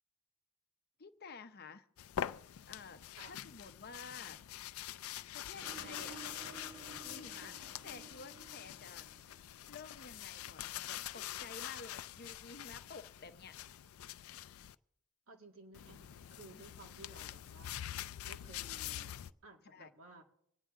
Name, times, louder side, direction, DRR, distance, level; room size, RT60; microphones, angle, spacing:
voice 1, 1.0-1.9 2.7-4.4 5.3-6.2 7.0-7.5 7.8-9.1 9.7-13.6 16.5-16.6 19.7-19.9, left 4 dB, 45° left, 9 dB, 0.7 m, -52 dB
sound 1, 2.0-14.7 15.7-19.3, left 11 dB, 85° left, 0.4 m, -45 dB
voice 2, 5.5-5.9 7.4-7.6 15.3-17.8 18.3-20.2, right 2 dB, 80° right, 2 dB, 1.9 m, -57 dB
sound 2, 5.6-9.7, right 4 dB, 25° right, 0.8 m, -54 dB
25.5 x 9.7 x 3.6 m, 0.77 s
head